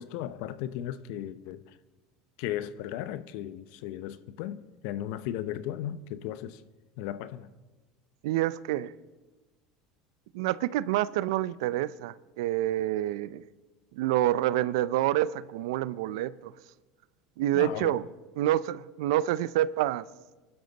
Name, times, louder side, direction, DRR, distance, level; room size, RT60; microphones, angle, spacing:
voice 1, 0.0-1.6 2.4-6.6 7.0-7.5 17.5-17.9, left 12 dB, 70° left, 0.7 m, -36 dB
voice 2, 8.2-8.9 10.3-13.4 13.9-16.5 17.4-18.1 18.4-20.1, right 14 dB, 80° right, 0.5 m, -27 dB
25.0 x 11.5 x 4.0 m
hypercardioid pair, 90°, 3 cm